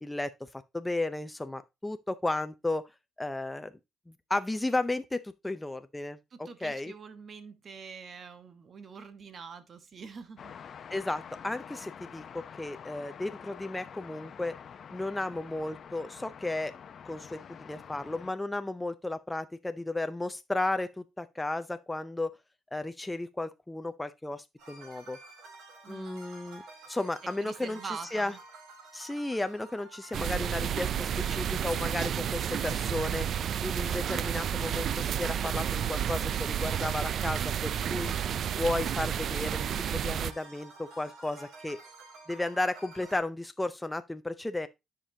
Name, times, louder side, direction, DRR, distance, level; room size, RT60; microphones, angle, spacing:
voice 1, 0.0-2.8 3.2-3.7 4.1-6.9 10.9-14.6 14.9-16.7 17.0-22.3 22.7-25.2 25.9-26.6 26.9-28.3 28.9-33.3 33.6-38.1 38.5-41.8 42.3-44.7, left 2 dB, 10° left, 0.5 m, -34 dB
voice 2, 6.3-10.5 25.8-26.2 27.4-28.4, right 5 dB, 50° right, 1.1 m, -44 dB
sound 1, 10.4-18.3, left 7 dB, 55° left, 0.6 m, -47 dB
sound 2, 24.6-43.2, right 3 dB, 85° right, 2.8 m, -51 dB
sound 3, 30.1-40.3, right 9 dB, 65° right, 0.3 m, -31 dB
9.9 x 5.1 x 2.7 m
cardioid pair, 90°, 0 cm